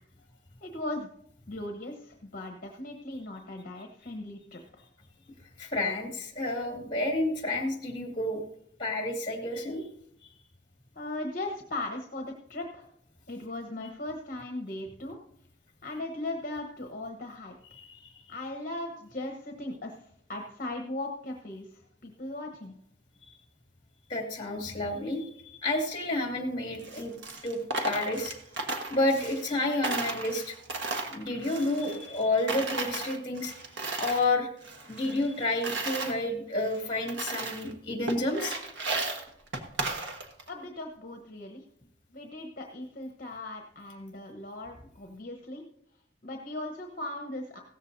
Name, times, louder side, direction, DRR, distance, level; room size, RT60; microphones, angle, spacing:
voice 1, 0.6-1.1 1.5-4.8 10.9-12.9 13.3-15.2 15.8-17.5 18.3-22.7 40.5-41.6 42.1-45.6 46.2-47.6, left 2 dB, 45° left, 3 dB, 1.1 m, -38 dB
voice 2, 5.6-8.4 8.8-9.9 17.7-18.1 24.1-27.1 27.4-28.3 28.9-30.6 31.1-33.5 34.0-34.5 34.9-38.6, left 2 dB, 25° left, 2 dB, 2.2 m, -30 dB
Coin (dropping), 26.7-29.6 29.8-32.2 32.5-34.3 34.6-36.1 36.7-36.8 37.1-37.7 38.1-40.5, right 2 dB, 70° right, 1.3 m, -35 dB
16.5 x 13.5 x 2.7 m, 0.70 s
head